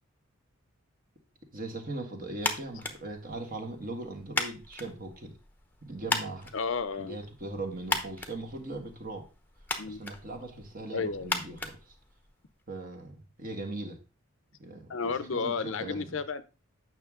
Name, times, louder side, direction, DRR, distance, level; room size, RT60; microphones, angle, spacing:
voice 1, 1.5-5.3 5.8-6.5 7.0-9.3 9.8-11.9 12.7-14.0 14.6-16.2, right 2 dB, 40° right, 2 dB, 1.6 m, -39 dB
sound 1, 2.4-12.6, left 3 dB, 10° left, 0.8 m, -38 dB
voice 2, 6.5-7.2 9.8-10.0 10.9-11.3 14.9-16.4, left 5 dB, 60° left, 14 dB, 0.6 m, -32 dB
8.9 x 6.1 x 3.7 m, 0.32 s
head